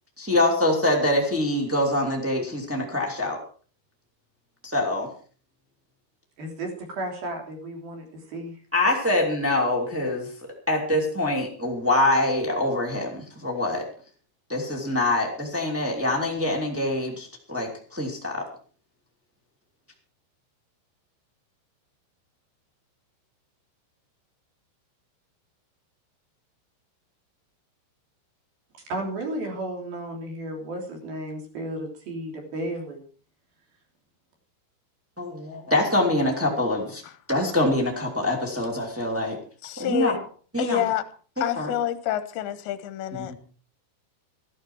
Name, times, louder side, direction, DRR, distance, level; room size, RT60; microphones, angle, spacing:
voice 1, 0.2-3.4 4.6-5.1 8.7-10.3 10.7-13.8 14.5-18.4 35.2-37.0 37.3-39.4 39.8-40.1 40.5-40.8 41.4-41.7 43.2-43.3, left 1 dB, 15° right, 0.4 m, -24 dB
voice 2, 6.4-8.6 28.9-33.0, right 1 dB, 50° right, 4.7 m, -33 dB
voice 3, 39.6-40.2 40.6-41.0 41.4-43.5, left 11 dB, 75° left, 2.8 m, -28 dB
14.0 x 13.5 x 4.7 m
omnidirectional pair, 6.0 m